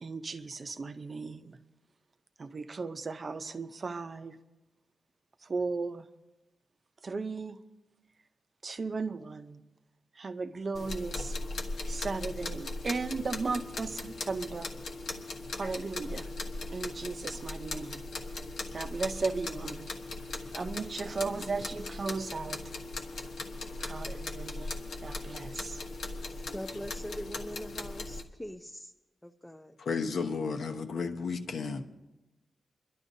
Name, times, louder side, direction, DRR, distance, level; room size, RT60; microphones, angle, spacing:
voice 1, 0.0-1.6 2.4-4.4 5.5-6.1 7.0-7.6 8.6-9.6 10.2-11.3 11.9-14.7 15.5-16.3 16.7-18.0 18.7-19.9 20.5-22.6 23.8-24.7 25.0-25.8, right 4 dB, 40° right, 0.6 m, -36 dB
sound 1, 10.7-28.2, left 2 dB, 90° left, 1.3 m, -39 dB
voice 2, 26.5-28.9 29.2-29.8, equal, 5° left, 0.5 m, -42 dB
voice 3, 29.8-31.8, left 5 dB, 75° left, 1.0 m, -33 dB
30.0 x 11.5 x 2.7 m
wide cardioid pair, 135°, 0 cm